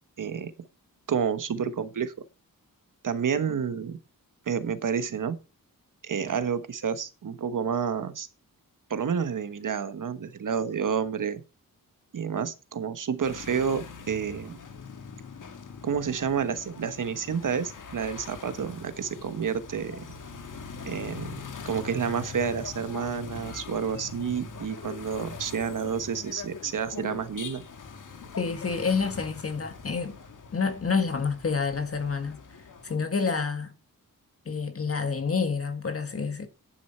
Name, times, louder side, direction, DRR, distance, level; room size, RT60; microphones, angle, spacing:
voice 1, 0.2-0.5 1.1-2.1 3.0-4.0 4.5-5.4 6.0-8.3 8.9-11.4 12.1-14.6 15.8-20.0 20.8-21.3 21.6-27.6, right 7 dB, 60° right, 1.3 m, -29 dB
sound 1, 13.2-33.0, left 4 dB, 60° left, 1.9 m, -42 dB
voice 2, 28.4-30.1 30.5-32.4 32.8-33.7 34.5-36.5, left 5 dB, 40° left, 1.8 m, -28 dB
10.5 x 9.9 x 4.5 m
wide cardioid pair, 160°, 35 cm